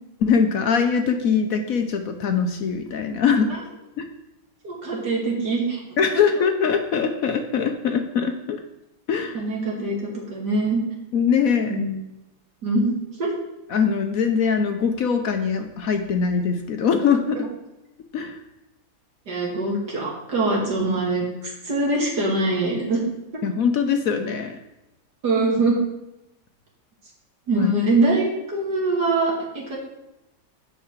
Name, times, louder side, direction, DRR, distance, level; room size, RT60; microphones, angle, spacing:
voice 1, 0.2-3.6 4.0-4.1 6.0-8.6 9.1-9.4 11.1-11.8 13.7-17.5 18.1-18.4 23.4-24.6 27.5-27.7, left 6 dB, 60° left, 6 dB, 1.1 m, -22 dB
voice 2, 4.6-5.8 6.1-6.2 9.3-10.8 11.7-11.9 12.6-13.3 17.3-17.5 19.3-23.1 25.2-25.8 27.5-29.8, right 2 dB, 70° right, -2 dB, 2.8 m, -23 dB
7.1 x 5.7 x 7.3 m, 0.91 s
omnidirectional pair, 1.8 m